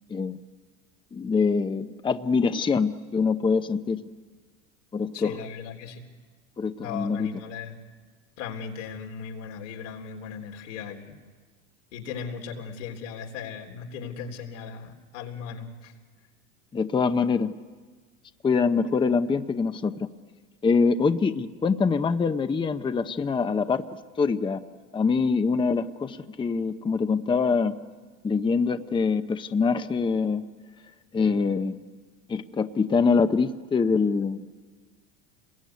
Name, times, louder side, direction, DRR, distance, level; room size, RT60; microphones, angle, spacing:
voice 1, 1.1-4.0 4.9-5.3 6.6-7.3 16.7-17.5 18.4-20.1 20.6-23.8 24.2-24.6 24.9-27.8 28.2-30.4 31.1-31.8 32.3-34.4, left 5 dB, 15° left, 9 dB, 0.8 m, -24 dB
voice 2, 5.1-6.1 6.8-7.7 8.4-11.2 11.9-15.9 31.2-31.4, left 6 dB, 85° left, 2 dB, 3.7 m, -37 dB
27.5 x 21.5 x 9.5 m, 1.5 s
supercardioid pair, 120°, 35 cm